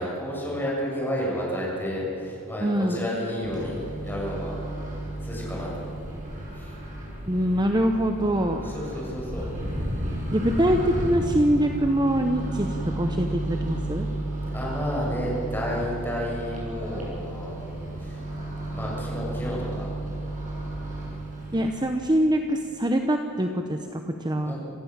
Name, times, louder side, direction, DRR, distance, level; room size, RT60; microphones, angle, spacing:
voice 1, 0.0-4.6 5.2-5.9 6.5-6.7 8.6-9.4 14.5-18.2 18.7-19.9 24.4-24.6, equal, 10° left, -4 dB, 6.9 m, -31 dB
voice 2, 2.6-3.1 7.3-8.7 9.4-9.5 10.3-14.1 21.5-24.5, equal, 20° right, 5 dB, 0.9 m, -24 dB
Microwave oven, 3.4-21.7, right 1 dB, 35° right, 7.2 m, -33 dB
26.5 x 15.0 x 7.4 m, 2.6 s
head